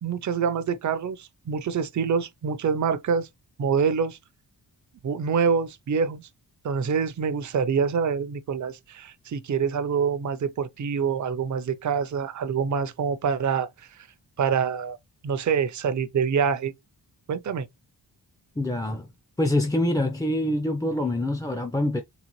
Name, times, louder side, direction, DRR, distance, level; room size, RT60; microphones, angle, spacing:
voice 1, 0.0-3.3 3.6-4.2 5.0-6.2 6.6-14.1 14.4-15.0 15.2-16.7 17.3-17.7, right 6 dB, 45° right, 0.5 m, -26 dB
voice 2, 18.6-19.1 19.4-22.0, left 1 dB, 10° left, 0.4 m, -25 dB
3.9 x 3.3 x 3.0 m
wide cardioid pair, 120°, 43 cm